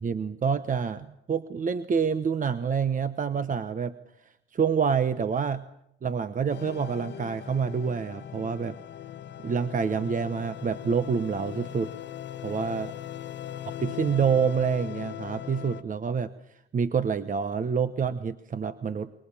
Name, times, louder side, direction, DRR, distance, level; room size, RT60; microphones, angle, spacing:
voice 1, 0.0-3.9 4.2-5.6 6.0-8.8 9.4-11.9 12.4-12.9 13.8-19.1, right 6 dB, 40° right, 12 dB, 1.0 m, -27 dB
sound 1, 6.5-15.8, left 11 dB, 65° left, 1.5 m, -39 dB
28.5 x 23.0 x 7.2 m, 0.77 s
cardioid pair, 90°, 20 cm